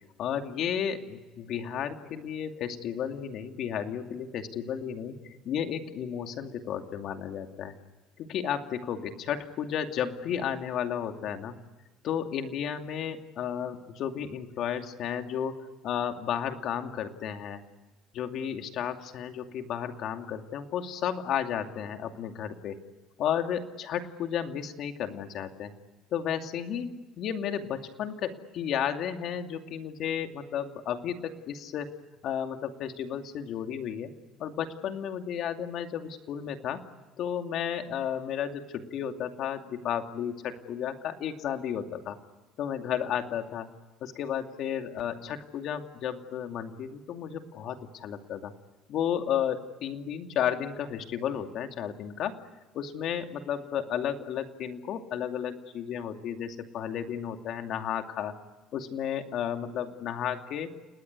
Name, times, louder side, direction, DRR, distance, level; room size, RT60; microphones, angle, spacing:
voice 1, 0.2-7.7 8.2-11.6 12.0-17.6 18.1-22.8 23.2-25.7 26.1-32.0 32.2-34.1 34.4-36.8 37.2-42.2 42.6-43.7 44.0-48.5 48.9-52.4 52.7-58.3 58.7-60.7, left 9 dB, 60° left, 6 dB, 2.5 m, -33 dB
29.5 x 19.5 x 9.6 m, 1.2 s
cardioid pair, 110°, 0 cm